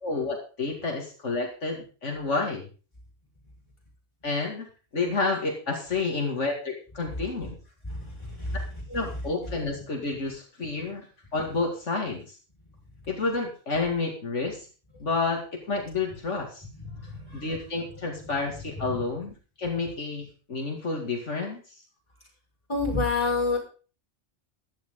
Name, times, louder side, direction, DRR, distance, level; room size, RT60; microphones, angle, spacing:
voice 1, 0.0-2.7 4.2-4.7 4.9-7.5 8.9-11.1 11.3-12.3 13.1-14.7 15.0-16.6 17.3-21.6, left 3 dB, 75° left, 1 dB, 2.6 m, -30 dB
voice 2, 7.8-8.6 17.1-17.4 18.9-19.0 22.7-23.6, left 3 dB, 20° left, -1 dB, 5.5 m, -28 dB
14.5 x 11.5 x 3.8 m, 0.36 s
omnidirectional pair, 1.2 m